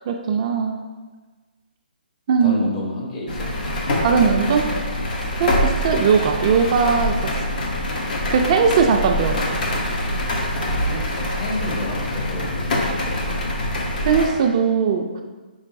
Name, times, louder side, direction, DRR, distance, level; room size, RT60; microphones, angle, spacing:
voice 1, 0.1-0.8 2.3-2.6 4.0-4.7 5.4-7.6 8.3-9.6 14.0-15.2, right 6 dB, 35° right, 3 dB, 0.3 m, -19 dB
voice 2, 2.4-3.5 3.9-4.4 5.5-5.7 8.4-9.0 10.6-13.7, left 1 dB, 35° left, -2 dB, 1.0 m, -32 dB
sound 1, 3.3-14.3, left 1 dB, 55° left, 0.9 m, -24 dB
5.3 x 3.8 x 2.6 m, 1.3 s
hypercardioid pair, 150°, 5 cm